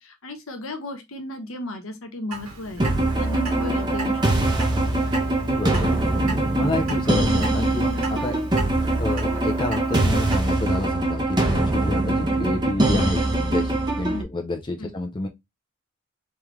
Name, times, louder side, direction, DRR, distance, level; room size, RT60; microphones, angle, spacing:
voice 1, 0.0-2.9 3.2-4.2 14.1-14.3 14.8-14.9, left 1 dB, 70° left, 1.0 m, -34 dB
Clock, 2.3-10.4, right 3 dB, 80° right, 1.8 m, -38 dB
sound 1, 2.8-14.2, right 2 dB, 20° right, 0.7 m, -22 dB
voice 2, 5.3-5.9 6.6-8.4 9.0-15.3, left 2 dB, 20° left, 0.4 m, -29 dB
3.5 x 3.1 x 3.0 m
head